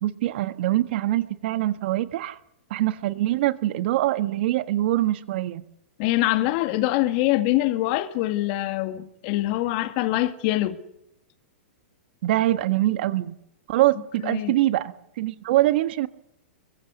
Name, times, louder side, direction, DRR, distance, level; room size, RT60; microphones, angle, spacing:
voice 1, 0.0-2.4 2.7-5.6 12.2-13.3 13.7-16.1, right 15 dB, 60° right, 1.4 m, -24 dB
voice 2, 6.0-10.8 14.2-14.5, left 16 dB, 45° left, 2.0 m, -24 dB
23.5 x 23.0 x 6.8 m
hypercardioid pair, 135°, 6 cm